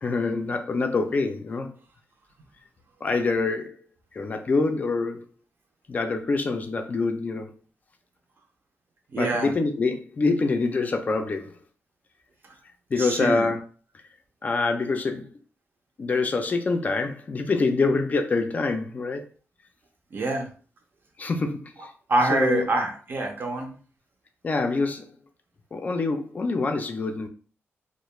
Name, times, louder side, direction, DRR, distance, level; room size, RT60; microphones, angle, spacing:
voice 1, 0.0-1.7 3.0-3.8 4.1-5.2 5.9-7.5 9.2-11.5 12.9-13.6 14.4-15.3 16.0-19.3 21.2-21.9 22.3-22.7 24.4-25.1 25.7-27.3, left 3 dB, 35° left, 0.3 m, -25 dB
voice 2, 9.1-9.6 13.0-13.5 20.1-20.5 22.1-23.7, right 2 dB, 50° right, 0.4 m, -25 dB
2.3 x 2.0 x 3.0 m
wide cardioid pair, 160°, 5 cm